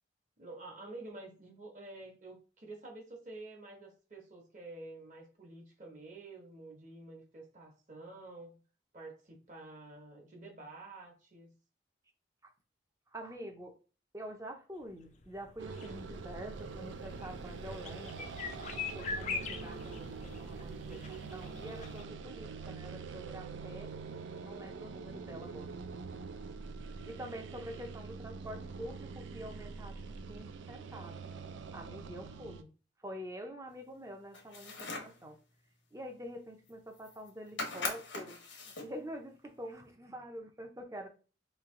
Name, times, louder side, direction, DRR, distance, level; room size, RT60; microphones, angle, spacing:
voice 1, 0.4-8.6 8.9-11.5, right 2 dB, 40° right, 1 dB, 1.2 m, -49 dB
voice 2, 13.1-13.7 14.1-18.3 18.9-25.7 27.1-30.0 30.3-31.2 31.7-32.7 33.0-35.4 35.9-38.4 38.6-41.1, equal, 15° right, 4 dB, 0.6 m, -46 dB
sound 1, 14.8-22.0, left 4 dB, 40° left, 0.4 m, -43 dB
sound 2, 15.6-32.6, right 5 dB, 80° right, 0.4 m, -45 dB
sound 3, 34.3-35.2 36.7-36.8 37.0-37.3 37.6-39.0, left 3 dB, 85° left, 1.1 m, -40 dB
3.2 x 2.9 x 3.7 m, 0.35 s
head